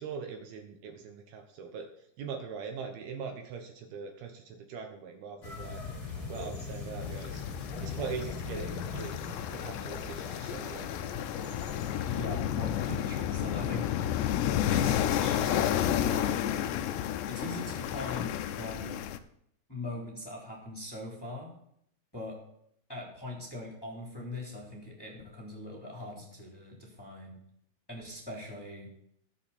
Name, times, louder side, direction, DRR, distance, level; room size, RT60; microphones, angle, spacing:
voice 1, 0.0-1.9 2.2-5.8 6.3-7.5 7.8-10.9, right 6 dB, 70° right, 4 dB, 2.9 m, -41 dB
sound 1, 5.4-12.2, left 4 dB, 25° left, 2.1 m, -40 dB
sound 2, 7.0-19.2, left 11 dB, 90° left, 2.9 m, -31 dB
voice 2, 12.1-14.2 14.6-16.6 17.3-19.0 19.7-21.5 22.1-22.4 22.9-27.4 27.9-28.9, left 2 dB, 5° left, -4 dB, 2.9 m, -41 dB
20.5 x 6.9 x 4.3 m, 0.71 s
omnidirectional pair, 4.8 m